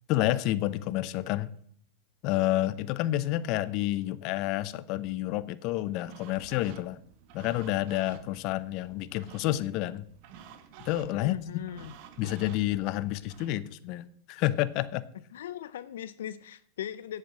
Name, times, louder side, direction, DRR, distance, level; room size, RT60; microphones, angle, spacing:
voice 1, 0.1-1.5 2.2-7.0 7.3-10.1 10.9-11.4 12.2-15.0, left 15 dB, 50° left, 16 dB, 0.7 m, -29 dB
sound 1, 6.0-13.5, right 8 dB, 55° right, 1.3 m, -51 dB
voice 2, 11.1-11.9 15.3-17.2, left 11 dB, 85° left, 14 dB, 0.4 m, -39 dB
8.2 x 7.6 x 7.6 m, 0.62 s
supercardioid pair, 130°, 0 cm